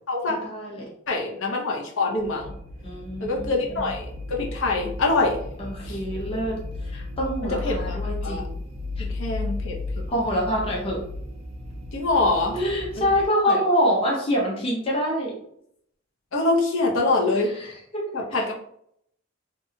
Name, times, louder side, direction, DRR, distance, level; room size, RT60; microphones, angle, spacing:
voice 1, 0.3-0.8 2.8-3.9 5.6-6.5 6.9-8.6 10.1-11.0 12.5-15.4 17.3-18.0 18.3-18.4, equal, 30° left, -3 dB, 0.7 m, -26 dB
voice 2, 1.1-2.5 3.2-5.4 5.9-6.0 7.6-8.4 9.0-9.8 11.9-12.6 13.0-13.1 13.4-13.6 16.3-17.5 18.1-18.5, left 2 dB, 70° left, 0 dB, 0.6 m, -24 dB
sound 1, 2.2-13.2, left 2 dB, 30° right, 0.4 m, -34 dB
2.8 x 2.2 x 2.7 m, 0.70 s
head